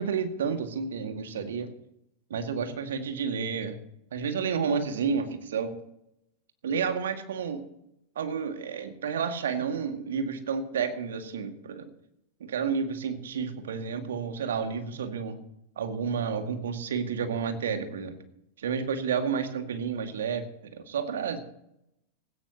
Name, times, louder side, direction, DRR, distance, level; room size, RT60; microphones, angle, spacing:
voice 1, 0.0-1.7 2.3-3.8 4.1-5.7 6.6-7.6 8.2-11.9 12.4-15.4 15.8-18.2 18.6-20.5 20.7-21.4, right 6 dB, 60° right, 6 dB, 2.1 m, -30 dB
17.0 x 17.0 x 3.0 m, 0.78 s
figure-of-eight pair, 90°, 0 cm